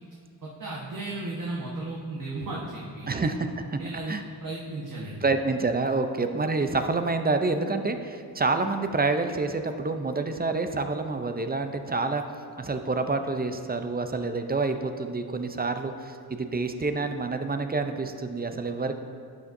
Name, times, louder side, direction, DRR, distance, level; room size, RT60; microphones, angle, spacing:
voice 1, 0.4-3.2 3.8-4.1 4.4-5.2, right 2 dB, 50° right, -4 dB, 1.3 m, -35 dB
voice 2, 3.1-3.8 4.1-4.2 5.2-12.2 12.6-19.0, right 3 dB, 25° right, 7 dB, 0.5 m, -28 dB
11.0 x 6.8 x 2.6 m, 2.4 s
cardioid pair, 70°, 41 cm